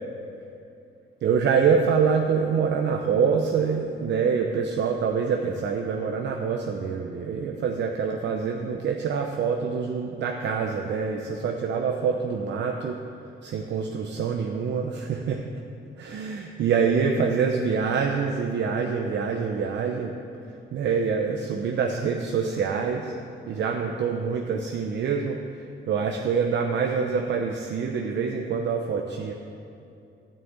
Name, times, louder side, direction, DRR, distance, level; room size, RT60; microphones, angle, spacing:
voice 1, 1.2-13.0 13.4-15.4 16.0-20.1 20.7-23.1 23.5-29.3, right 6 dB, 65° right, 2 dB, 0.8 m, -25 dB
9.5 x 6.7 x 8.2 m, 2.6 s
cardioid pair, 90°, 20 cm